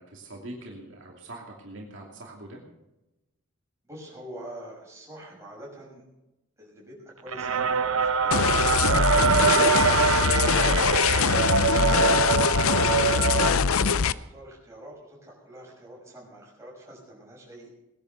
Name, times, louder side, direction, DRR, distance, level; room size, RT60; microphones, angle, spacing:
voice 1, 0.0-2.6 10.8-11.2, right 1 dB, 60° right, -1 dB, 2.8 m, -43 dB
voice 2, 3.9-6.0 6.6-9.7 11.7-17.7, right 1 dB, 15° right, -4 dB, 6.3 m, -44 dB
sound 1, 7.3-13.5, right 5 dB, 80° right, 0.9 m, -23 dB
sound 2, 8.3-14.1, left 6 dB, 80° left, 0.6 m, -23 dB
19.5 x 10.5 x 6.8 m, 0.97 s
head